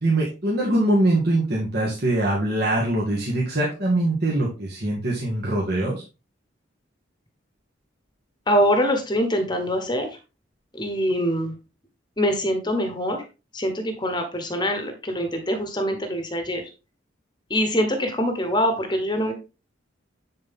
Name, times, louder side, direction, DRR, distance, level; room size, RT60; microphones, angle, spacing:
voice 1, 0.0-6.0, right 1 dB, 55° right, -4 dB, 1.9 m, -23 dB
voice 2, 8.5-10.2 10.7-11.6 12.2-13.2 13.5-16.7 17.5-19.3, equal, 25° left, 6 dB, 1.1 m, -24 dB
10.5 x 4.2 x 3.6 m, 0.30 s
head